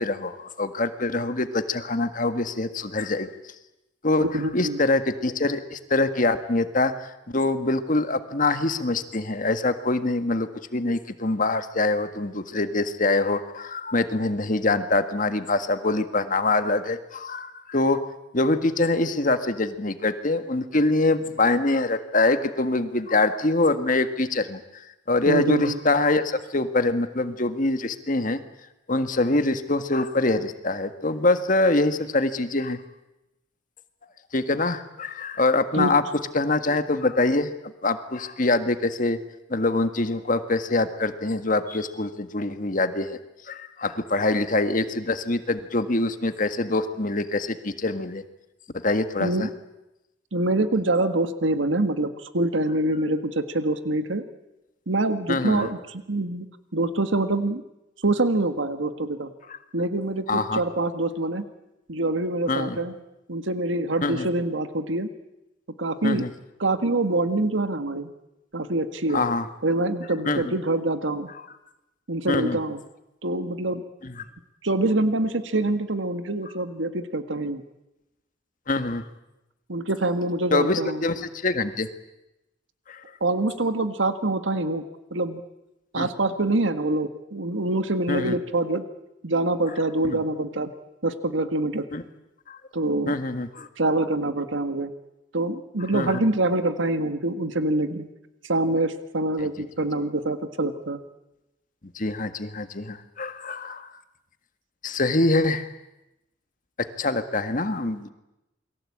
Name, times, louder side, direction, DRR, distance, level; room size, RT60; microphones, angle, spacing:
voice 1, 0.0-3.3 4.0-4.2 4.5-18.0 18.3-24.8 25.1-28.4 28.9-32.8 34.3-36.0 36.3-37.5 37.8-39.2 39.5-43.2 43.5-48.2 48.8-49.5 55.3-55.7 60.3-60.6 62.5-62.8 64.0-64.3 66.0-66.3 69.1-69.5 70.3-70.5 72.3-72.6 74.0-74.1 78.7-79.0 80.5-81.9 82.9-83.0 85.9-86.1 88.1-88.4 90.0-90.2 91.9-92.0 92.5-92.6 93.1-93.7 95.9-96.3 101.9-103.9 104.8-105.7 107.0-108.1, left 2 dB, 45° left, 9 dB, 1.7 m, -24 dB
voice 2, 4.2-4.8 25.3-25.8 35.7-35.9 49.2-49.5 50.3-54.2 54.9-56.4 56.7-57.6 58.0-59.3 59.7-61.4 61.9-62.9 63.3-65.1 65.8-66.2 66.6-68.1 68.5-69.2 69.6-71.3 72.1-72.8 73.2-73.8 74.6-77.6 79.7-81.0 83.2-84.8 85.1-85.4 85.9-88.8 89.2-90.7 91.0-91.9 92.7-93.2 93.8-94.9 95.3-98.1 98.4-101.0, right 2 dB, 85° right, 9 dB, 1.6 m, -25 dB
28.5 x 22.5 x 8.7 m, 0.94 s
head